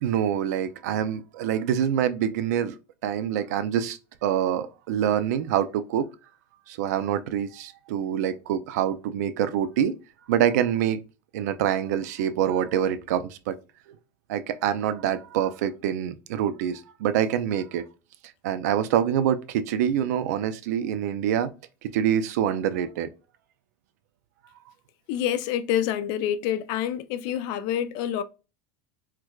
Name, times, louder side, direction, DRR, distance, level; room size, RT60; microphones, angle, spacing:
voice 1, 0.0-2.7 3.0-6.1 6.7-9.9 10.3-11.0 11.3-13.5 14.3-17.9 18.4-21.5 21.8-23.1, right 9 dB, 80° right, 0.4 m, -25 dB
voice 2, 25.1-28.2, left 10 dB, 55° left, 0.4 m, -27 dB
4.5 x 2.1 x 2.3 m
supercardioid pair, 150°, 9 cm